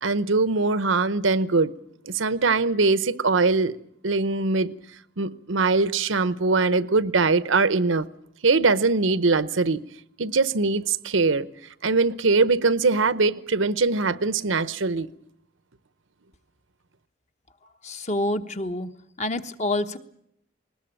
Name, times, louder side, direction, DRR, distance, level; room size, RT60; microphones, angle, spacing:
voice 1, 0.0-1.7 2.1-3.8 4.0-4.7 5.2-8.1 8.4-9.8 10.2-11.5 11.8-15.1, right 3 dB, 80° right, 0.9 m, -22 dB
voice 2, 17.8-18.9 19.2-20.0, left 1 dB, 35° left, 1.1 m, -27 dB
20.0 x 20.0 x 8.8 m
head